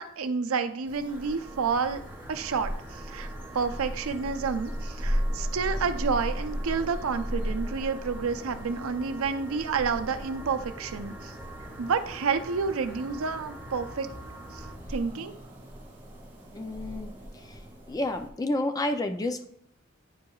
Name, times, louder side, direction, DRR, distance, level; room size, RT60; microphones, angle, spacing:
voice 1, 0.0-2.0 2.3-3.3 3.5-11.3 11.8-14.1 14.5-15.3, right 5 dB, 80° right, 8 dB, 0.5 m, -29 dB
sound 1, 0.8-18.3, equal, 25° right, 1.9 m, -37 dB
sound 2, 1.1-14.8, right 2 dB, 10° right, 1.6 m, -47 dB
sound 3, 1.7-14.9, left 1 dB, 55° left, 1.8 m, -49 dB
voice 2, 16.5-17.1 17.9-19.5, left 1 dB, 15° left, 7 dB, 0.4 m, -30 dB
9.3 x 4.7 x 2.3 m, 0.71 s
head